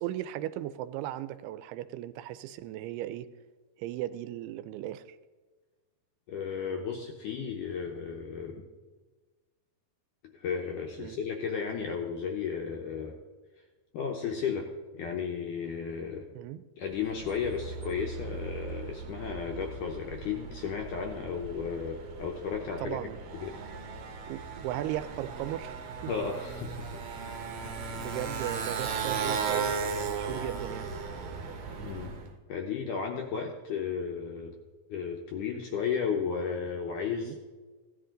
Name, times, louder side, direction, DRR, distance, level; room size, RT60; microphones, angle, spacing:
voice 1, 0.0-3.3 3.8-5.2 11.0-11.2 16.3-16.6 22.8-23.2 24.3-26.1 27.8-30.9 37.1-37.4, right 13 dB, 85° right, 13 dB, 2.5 m, -37 dB
voice 2, 6.3-8.7 10.3-13.1 13.9-14.7 15.0-16.3 16.8-23.1 23.4-23.6 26.1-26.9 27.6-28.1 31.8-32.1 32.5-34.5 34.9-37.4, left 6 dB, 75° left, 2 dB, 2.0 m, -34 dB
Motorcycle, 16.9-32.3, right 5 dB, 65° right, 1.9 m, -37 dB
16.5 x 11.0 x 3.8 m, 1.3 s
omnidirectional pair, 4.7 m